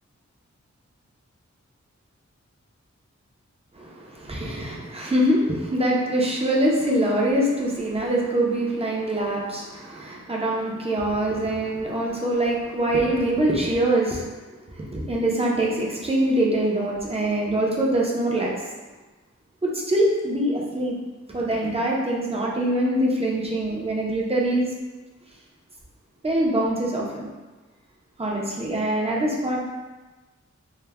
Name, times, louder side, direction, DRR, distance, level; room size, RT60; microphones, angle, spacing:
voice 1, 3.7-14.4 14.7-18.5 19.6-21.0 21.3-24.7 26.2-27.3 28.2-29.6, right 1 dB, 20° right, -3 dB, 0.5 m, -24 dB
2.2 x 2.1 x 3.4 m, 1.2 s
wide cardioid pair, 70°, 29 cm